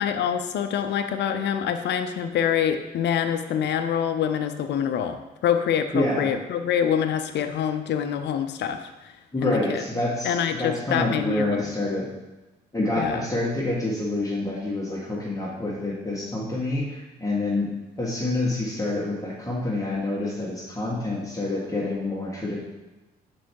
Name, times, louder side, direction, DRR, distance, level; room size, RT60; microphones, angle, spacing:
voice 1, 0.0-8.9 9.4-9.8 10.2-11.7 13.0-13.2, left 8 dB, 55° left, 8 dB, 0.6 m, -25 dB
voice 2, 5.9-6.3 9.3-12.1 12.7-22.6, left 2 dB, 15° left, -5 dB, 1.9 m, -27 dB
6.0 x 4.7 x 4.6 m, 1.1 s
hypercardioid pair, 55°, 21 cm